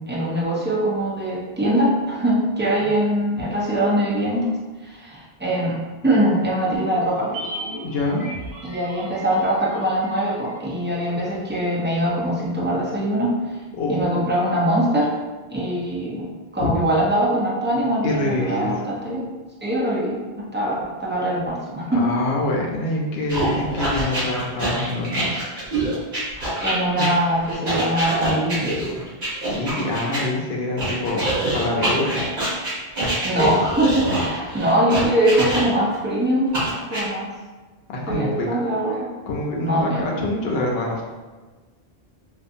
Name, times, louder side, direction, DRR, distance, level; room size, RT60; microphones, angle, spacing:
voice 1, 0.0-4.4 4.8-5.8 6.0-7.3 8.6-13.3 13.9-15.1 15.5-16.3 16.5-19.2 19.6-22.0 26.6-28.7 33.2-36.5 36.9-37.3 38.1-39.1 39.6-40.1, right 1 dB, 20° right, -6 dB, 0.3 m, -22 dB
sound 1, 6.6-11.1 11.3-11.4, right 1 dB, 80° right, 0.8 m, -36 dB
voice 2, 7.8-8.3 13.7-14.0 16.6-16.7 18.0-18.7 21.9-25.2 29.5-32.1 37.9-38.6 39.3-41.0, left 2 dB, 75° left, -2 dB, 0.8 m, -25 dB
sound 2, 23.3-30.2 30.8-36.0 36.5-37.0, right 1 dB, 50° right, 1.1 m, -25 dB
2.7 x 2.4 x 2.4 m, 1.3 s
omnidirectional pair, 1.0 m